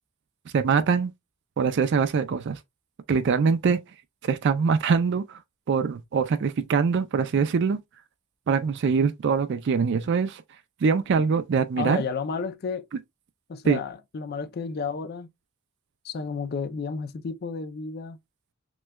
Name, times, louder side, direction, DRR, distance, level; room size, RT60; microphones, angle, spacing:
voice 1, 0.5-1.1 1.6-2.6 3.1-3.8 4.3-5.4 5.7-7.8 8.5-10.4 10.8-12.0 13.7-13.8, right 5 dB, 55° right, 0.4 m, -23 dB
voice 2, 11.8-12.9 13.5-15.3 16.0-18.2, left 5 dB, 45° left, 0.4 m, -32 dB
6.0 x 2.2 x 2.2 m
head